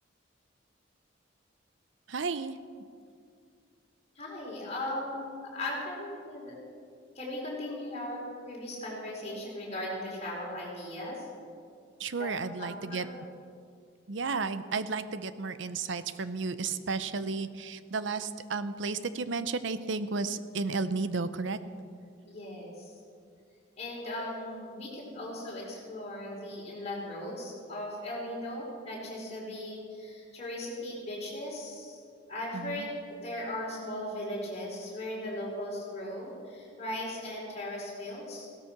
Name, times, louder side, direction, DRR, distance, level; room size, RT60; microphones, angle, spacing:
voice 1, 2.1-2.6 12.0-13.1 14.1-21.6 32.5-32.9, right 4 dB, 65° right, 12 dB, 0.7 m, -33 dB
voice 2, 4.1-6.6 7.1-11.2 12.2-12.3 12.6-13.1 22.3-22.9 23.8-32.0 32.3-38.5, left 1 dB, 35° left, -4 dB, 4.6 m, -38 dB
17.0 x 13.0 x 5.9 m, 2.3 s
head